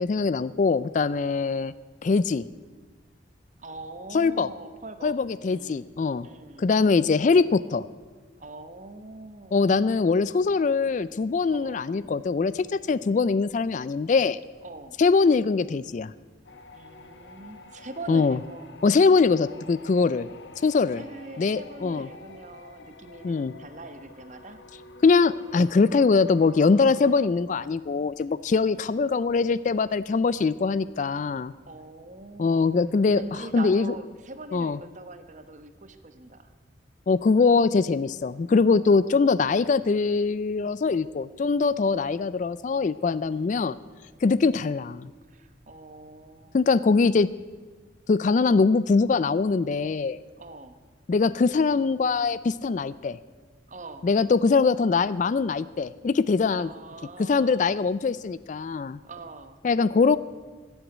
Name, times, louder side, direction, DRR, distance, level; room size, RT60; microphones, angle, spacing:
voice 1, 0.0-1.7 2.0-2.5 4.1-4.5 5.0-6.3 6.6-7.8 9.5-14.4 15.0-16.1 18.1-18.4 18.8-20.3 20.6-21.0 21.4-22.1 23.2-23.5 25.0-31.5 32.4-33.2 33.5-33.9 34.5-34.8 37.1-43.8 44.2-45.1 46.5-47.3 48.1-50.2 51.1-53.2 54.0-56.7 57.2-59.0 59.6-60.2, left 4 dB, 40° left, 17 dB, 0.3 m, -22 dB
voice 2, 3.6-5.9 6.2-6.7 8.4-9.8 11.5-11.8 14.6-15.0 16.7-18.7 20.9-24.6 28.5-28.8 31.7-32.7 33.1-36.5 38.7-39.7 43.3-44.3 45.3-46.6 50.4-50.8 53.7-54.1 56.5-57.7 59.0-59.6, right 2 dB, 40° right, 10 dB, 1.0 m, -43 dB
sound 1, 16.4-27.3, left 3 dB, 70° left, 1.0 m, -49 dB
14.5 x 8.1 x 9.3 m, 1.4 s
head